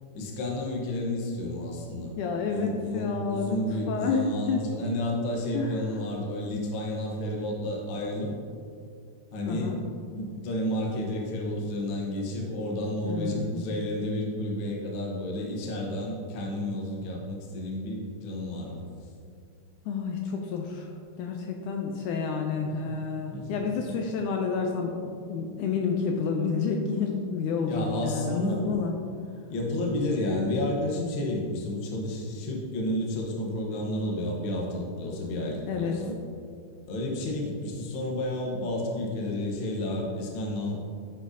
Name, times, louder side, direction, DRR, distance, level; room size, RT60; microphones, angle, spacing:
voice 1, 0.1-2.1 2.5-8.3 9.3-9.7 10.1-18.8 22.6-23.0 23.3-23.6 27.7-28.8 29.5-36.1 36.9-40.8, left 1 dB, 65° left, -1 dB, 1.2 m, -31 dB
voice 2, 2.2-3.6 3.9-4.7 5.5-5.8 9.5-9.8 13.0-13.7 19.9-20.9 21.2-28.9 35.7-36.0, left 5 dB, 80° left, 2 dB, 1.9 m, -30 dB
10.0 x 6.3 x 2.7 m, 2.3 s
omnidirectional pair, 3.9 m